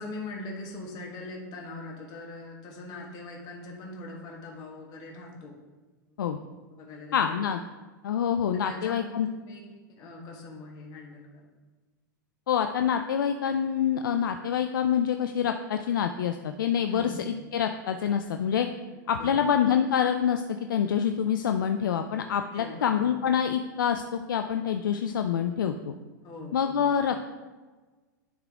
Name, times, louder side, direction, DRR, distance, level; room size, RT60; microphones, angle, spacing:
voice 1, 0.0-5.6 6.8-7.2 8.5-9.6 10.0-11.5 16.9-17.4 19.2-19.5 22.5-23.1 26.2-27.0, left 2 dB, 40° left, 0 dB, 1.5 m, -41 dB
voice 2, 7.1-7.6 8.0-9.3 12.5-18.7 19.1-25.9 26.5-27.3, left 8 dB, 80° left, 7 dB, 0.4 m, -26 dB
10.5 x 3.7 x 3.6 m, 1.3 s
hypercardioid pair, 115°, 11 cm